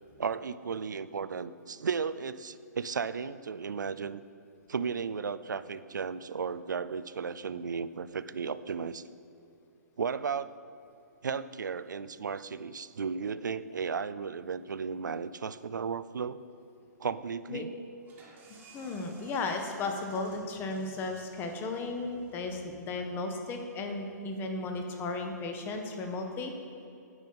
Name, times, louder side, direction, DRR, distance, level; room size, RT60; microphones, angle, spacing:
voice 1, 0.2-4.2 4.7-9.0 10.0-10.5 11.2-16.4 17.0-17.7, right 6 dB, 85° right, 15 dB, 0.4 m, -34 dB
sound 1, 18.0-23.5, right 4 dB, 20° right, 1.3 m, -57 dB
voice 2, 18.7-26.5, left 3 dB, 20° left, 4 dB, 0.9 m, -35 dB
9.4 x 5.3 x 5.2 m, 2.7 s
hypercardioid pair, 135°, 10 cm